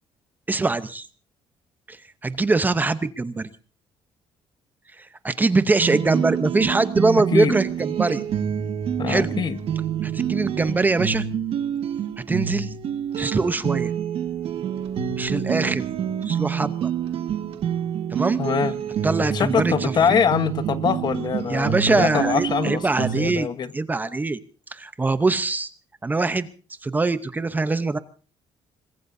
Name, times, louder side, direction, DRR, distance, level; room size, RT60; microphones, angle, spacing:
voice 1, 0.5-1.1 1.9-3.5 5.0-8.2 9.1-9.4 10.0-11.3 12.3-12.7 13.2-13.9 15.2-15.8 16.2-16.9 18.1-18.4 19.0-20.2 21.5-23.5 23.7-24.4 24.7-25.7 26.0-26.5 26.8-28.0, right 3 dB, 15° right, 12 dB, 0.8 m, -23 dB
sound 1, 5.8-23.4, right 8 dB, 60° right, 1.7 m, -27 dB
voice 2, 9.0-9.6 18.4-18.7 19.2-22.8 23.1-23.7, left 7 dB, 45° left, 12 dB, 1.2 m, -23 dB
26.0 x 20.5 x 2.7 m, 0.37 s
cardioid pair, 145°, 11 cm